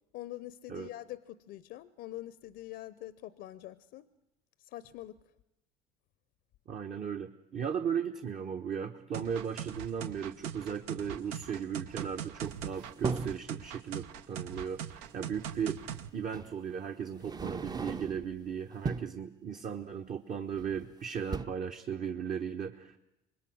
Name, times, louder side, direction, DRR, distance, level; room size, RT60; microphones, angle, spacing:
voice 1, 0.1-4.1 4.6-5.2, left 14 dB, 60° left, 0.7 m, -44 dB
voice 2, 6.7-23.0, right 7 dB, 45° right, 1.2 m, -36 dB
sound 1, 9.1-16.1, right 9 dB, 75° right, 0.9 m, -41 dB
sound 2, 12.4-13.5 15.1-15.2 16.3-16.5 17.1-18.3 18.7-19.2 20.6-20.9 21.2-21.5, right 4 dB, 20° right, 0.7 m, -37 dB
25.5 x 20.5 x 6.2 m
hypercardioid pair, 75°, 19 cm